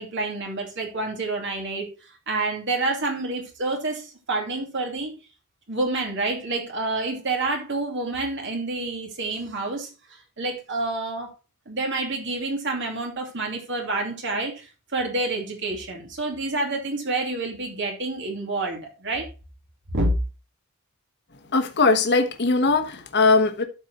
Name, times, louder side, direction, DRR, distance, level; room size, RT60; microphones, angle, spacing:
voice 1, 0.0-1.9 2.3-5.1 5.7-11.3 11.7-19.3 19.9-20.2, right 2 dB, 55° right, 2.6 m, -28 dB
voice 2, 21.5-23.6, left 3 dB, 50° left, 1.3 m, -20 dB
12.5 x 4.6 x 4.2 m
head